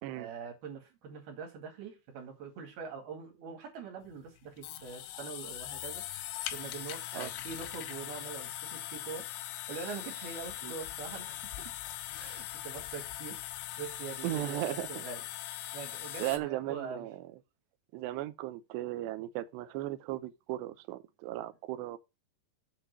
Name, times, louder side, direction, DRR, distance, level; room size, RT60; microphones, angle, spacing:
voice 1, 0.1-9.3 9.7-11.7 12.2-13.4 13.8-14.6 14.9-15.2 15.7-17.0, right 6 dB, 60° right, 3.8 m, -44 dB
sound 1, 4.0-16.4, left 13 dB, 85° left, 3.1 m, -41 dB
voice 2, 14.2-15.0 16.2-17.2 17.9-22.0, right 15 dB, 80° right, 2.7 m, -36 dB
7.6 x 4.3 x 6.7 m
omnidirectional pair, 5.2 m